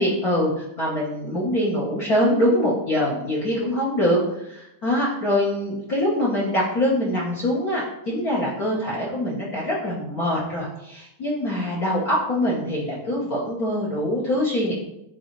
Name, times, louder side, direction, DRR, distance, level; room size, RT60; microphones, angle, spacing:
voice 1, 0.0-14.7, left 1 dB, 55° left, -6 dB, 1.0 m, -24 dB
11.0 x 3.9 x 3.2 m, 0.83 s
omnidirectional pair, 3.5 m